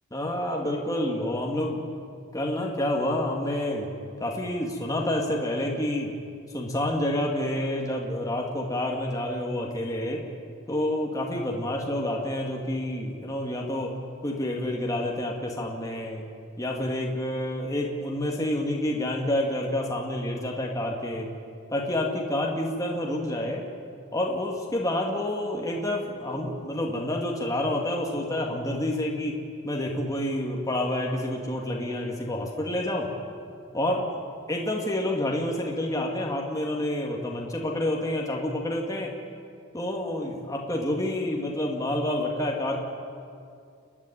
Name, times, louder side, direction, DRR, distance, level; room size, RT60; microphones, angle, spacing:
voice 1, 0.1-1.9 2.3-3.9 4.2-6.1 6.5-10.2 10.7-14.0 14.2-16.2 16.6-21.3 21.7-23.6 24.1-29.3 29.6-33.1 33.7-34.1 34.5-39.1 39.7-42.8, left 1 dB, 20° left, -1 dB, 2.3 m, -28 dB
30.0 x 10.5 x 10.0 m, 2.3 s
head